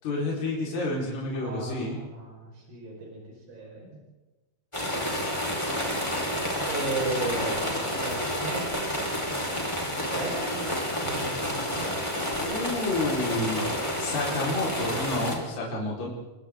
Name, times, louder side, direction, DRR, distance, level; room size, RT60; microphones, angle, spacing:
voice 1, 0.0-2.0 12.4-13.6 14.0-16.1, left 2 dB, 45° left, -5 dB, 5.9 m, -29 dB
voice 2, 1.3-3.2 3.5-4.0 6.7-7.7 7.9-8.8 10.1-12.3, right 2 dB, 85° right, -2 dB, 7.4 m, -36 dB
sound 1, 4.7-15.4, equal, 5° left, 4.7 m, -30 dB
28.5 x 24.0 x 3.9 m, 1.2 s
omnidirectional pair, 4.6 m